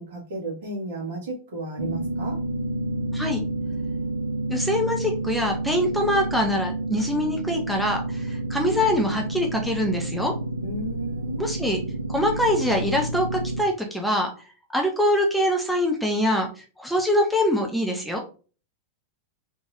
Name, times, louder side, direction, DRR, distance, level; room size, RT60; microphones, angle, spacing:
voice 1, 0.0-2.4 10.6-11.5, right 2 dB, 55° right, -2 dB, 1.6 m, -34 dB
sound 1, 1.8-13.6, right 2 dB, 75° right, 0.3 m, -29 dB
voice 2, 4.5-10.3 11.4-11.8 12.1-14.3 14.7-18.2, left 1 dB, ahead, 0 dB, 0.7 m, -24 dB
3.6 x 3.2 x 2.6 m, 0.37 s
figure-of-eight pair, 90°, 0 cm